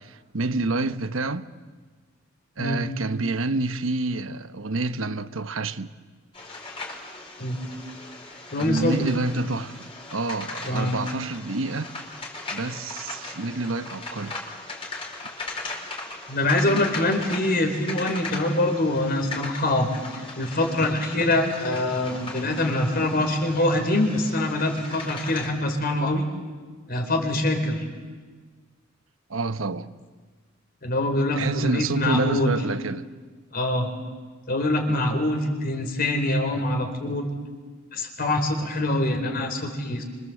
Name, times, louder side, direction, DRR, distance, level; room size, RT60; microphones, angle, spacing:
voice 1, 0.0-1.5 2.6-5.9 8.6-11.9 12.5-14.4 27.6-27.7 29.3-29.9 31.4-33.1, right 3 dB, 90° right, 1.1 m, -28 dB
sound 1, 6.3-25.5, left 3 dB, 30° left, 5.3 m, -38 dB
voice 2, 8.5-9.1 10.7-11.0 16.3-26.3 26.9-27.8 30.8-32.6 33.5-33.9 34.5-37.3 37.9-40.0, left 1 dB, 50° left, 4.4 m, -24 dB
28.5 x 26.0 x 7.9 m
head